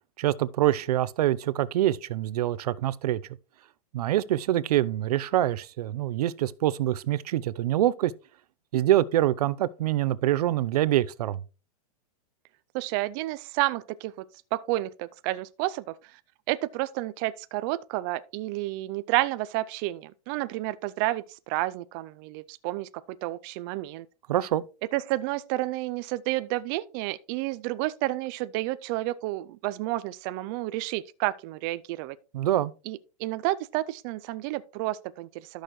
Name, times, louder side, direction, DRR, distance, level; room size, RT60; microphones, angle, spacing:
voice 1, 0.2-3.2 3.9-8.1 8.7-11.4 24.3-24.6 32.3-32.7, right 13 dB, 75° right, 0.6 m, -25 dB
voice 2, 12.7-14.3 14.5-16.2 16.5-24.1 24.9-32.2 32.9-35.6, right 18 dB, 35° right, 0.4 m, -30 dB
12.0 x 6.4 x 3.1 m
supercardioid pair, 155°, 20 cm